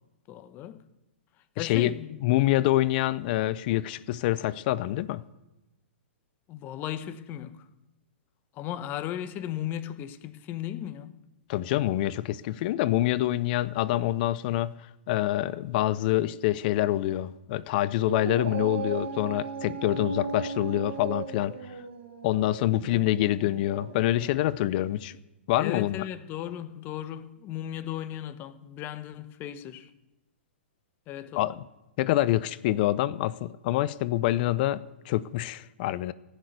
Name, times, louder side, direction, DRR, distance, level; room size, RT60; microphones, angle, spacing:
voice 1, 0.3-0.8 1.6-2.2 6.5-7.6 8.5-11.2 25.6-29.9 31.1-31.5, left 11 dB, 30° left, 1.0 m, -36 dB
voice 2, 1.6-1.9 2.2-5.2 11.5-14.7 15.1-21.6 22.2-25.1 25.5-26.0 31.4-31.6 32.0-36.1, left 15 dB, 45° left, 0.6 m, -26 dB
Dog, 18.0-24.6, right 6 dB, 70° right, 1.7 m, -37 dB
15.5 x 6.7 x 9.4 m
hypercardioid pair, 130°, 7 cm